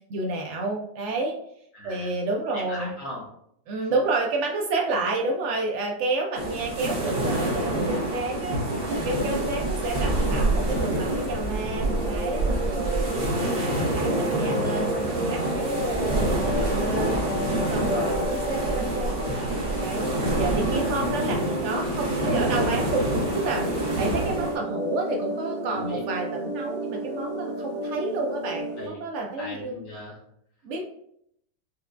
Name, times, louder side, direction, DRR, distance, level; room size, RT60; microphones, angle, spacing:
voice 1, 0.1-1.3 1.8-2.9 3.7-8.6 8.9-13.0 13.4-17.2 17.7-23.7 24.0-29.8 30.6-30.8, right 2 dB, 85° right, 1 dB, 0.6 m, -30 dB
voice 2, 1.7-2.1 2.5-3.2 3.8-3.9 9.7-9.8 10.1-10.5 20.7-21.0 22.1-22.3 25.7-26.0 28.8-29.0 29.4-30.2, left 1 dB, 60° left, -4 dB, 1.1 m, -39 dB
sound 1, 6.3-24.6, right 1 dB, 45° right, 0.9 m, -27 dB
sound 2, 11.8-28.9, right 1 dB, 65° right, 1.8 m, -32 dB
4.4 x 2.2 x 2.4 m, 0.71 s
omnidirectional pair, 1.8 m